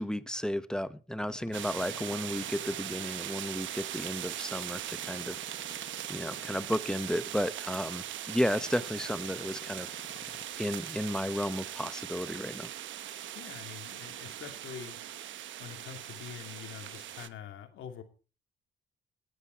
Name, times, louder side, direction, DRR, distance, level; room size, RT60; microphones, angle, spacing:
voice 1, 0.0-5.4 6.1-9.9 10.6-12.7, equal, 5° left, 14 dB, 0.9 m, -33 dB
sound 1, 1.2-3.0 4.9-6.7 8.6-10.4, left 6 dB, 35° left, 1.1 m, -53 dB
sound 2, 1.5-17.3, right 11 dB, 70° right, 1.0 m, -40 dB
voice 2, 13.3-15.0 15.6-18.0, left 9 dB, 80° left, 6 dB, 2.5 m, -45 dB
19.0 x 9.9 x 4.5 m, 0.36 s
cardioid pair, 90°, 20 cm